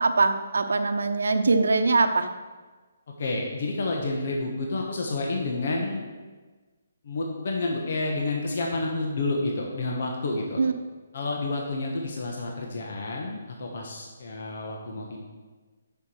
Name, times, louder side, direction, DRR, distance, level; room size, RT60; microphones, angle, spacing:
voice 1, 0.0-2.3 10.6-10.7, right 3 dB, 85° right, 8 dB, 0.8 m, -22 dB
voice 2, 3.2-6.0 7.0-10.6 11.1-15.2, left 2 dB, 55° left, 0 dB, 1.3 m, -29 dB
7.1 x 5.9 x 6.2 m, 1.3 s
hypercardioid pair, 170°, 0 cm